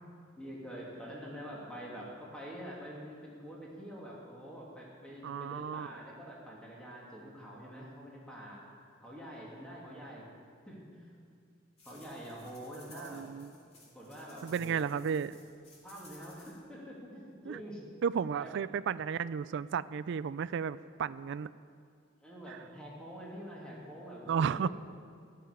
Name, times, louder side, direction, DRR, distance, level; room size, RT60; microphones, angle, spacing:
voice 1, 0.4-8.6 9.0-10.3 10.7-11.1 11.8-13.4 13.8-14.9 15.8-18.0 18.3-18.5 22.2-24.7, equal, 5° left, -4 dB, 2.6 m, -46 dB
voice 2, 5.2-5.9 13.0-13.5 14.4-15.3 17.5-17.6 18.0-21.5 24.3-24.7, right 7 dB, 60° right, 16 dB, 0.3 m, -33 dB
sound 1, 11.8-16.6, left 3 dB, 30° left, 2.7 m, -58 dB
13.5 x 6.8 x 10.0 m, 2.2 s
head